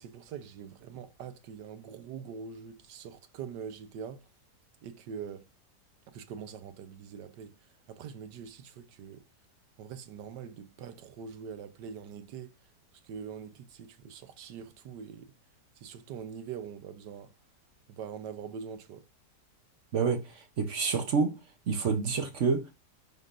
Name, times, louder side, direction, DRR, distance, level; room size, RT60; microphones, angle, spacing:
voice 1, 0.0-4.2 4.8-5.5 6.1-9.2 9.8-12.6 12.9-15.3 15.8-17.3 17.9-19.1, right 7 dB, 90° right, 1.4 m, -43 dB
voice 2, 19.9-21.4 21.7-22.7, right 5 dB, 55° right, 1.0 m, -28 dB
11.0 x 3.8 x 2.5 m
omnidirectional pair, 1.8 m